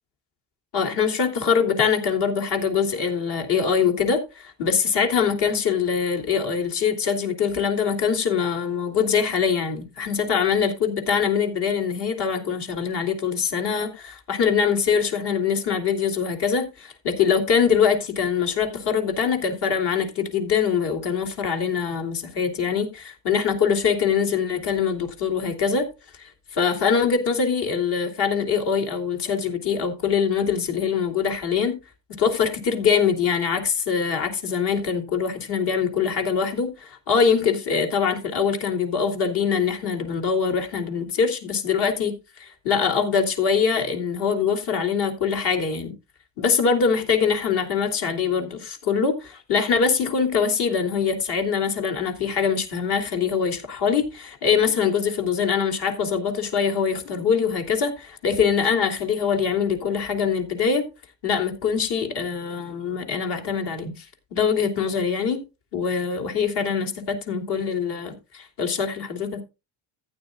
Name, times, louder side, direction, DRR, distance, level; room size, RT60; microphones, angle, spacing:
voice 1, 0.7-25.9 26.1-31.8 32.2-45.9 46.4-60.8 61.2-64.0 64.3-65.4 65.7-69.4, left 6 dB, 55° left, 3.2 m, -23 dB
15.0 x 9.5 x 2.4 m
cardioid pair, 140°, 48 cm